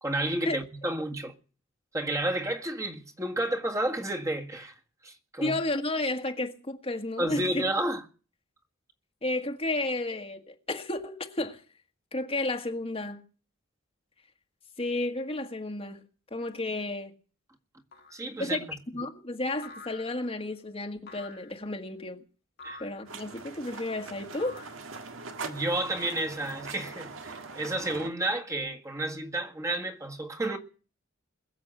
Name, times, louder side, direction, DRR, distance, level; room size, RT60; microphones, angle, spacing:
voice 1, 0.0-1.3 1.9-4.7 5.0-5.6 7.2-8.0 18.1-18.8 22.6-22.8 25.4-30.6, right 1 dB, 15° right, 1.7 m, -31 dB
voice 2, 5.4-7.6 9.2-11.6 12.1-13.2 14.8-16.0 16.3-17.1 18.4-18.6 18.9-22.2 22.8-24.6, left 2 dB, 30° left, 1.5 m, -32 dB
sound 1, 17.9-18.3 19.6-20.4 21.1-21.6 22.6-23.1 24.4-24.9 25.9-26.6, left 3 dB, 55° left, 1.8 m, -48 dB
sound 2, 23.1-28.1, right 4 dB, 70° right, 1.8 m, -42 dB
21.5 x 7.4 x 8.9 m
head